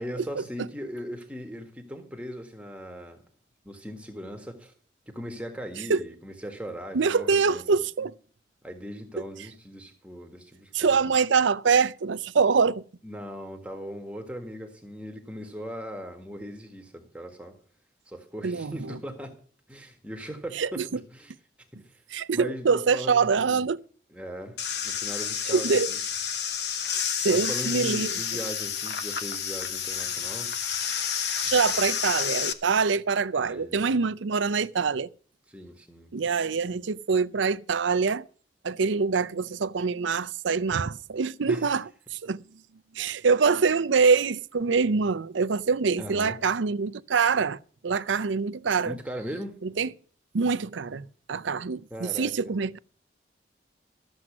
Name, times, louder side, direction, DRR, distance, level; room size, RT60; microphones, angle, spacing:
voice 1, 0.0-3.2 3.6-4.7 5.1-7.8 8.6-11.0 13.0-17.6 18.1-19.4 19.7-21.3 21.7-22.0 22.3-23.6 24.1-24.6 24.8-26.0 27.3-30.5 33.3-33.8 35.5-36.1 41.5-41.7 46.0-46.4 48.8-49.6 51.9-52.3, equal, 5° right, 1.7 m, -39 dB
voice 2, 6.9-8.1 10.7-12.8 18.4-19.0 20.5-21.0 22.1-23.8 25.5-25.9 27.2-28.1 31.4-35.1 36.1-38.3 38.6-42.4 42.9-49.0 49.6-49.9 50.3-52.8, right 5 dB, 85° right, 0.6 m, -25 dB
sound 1, 24.6-32.5, left 7 dB, 65° left, 1.1 m, -30 dB
14.0 x 7.8 x 6.1 m
head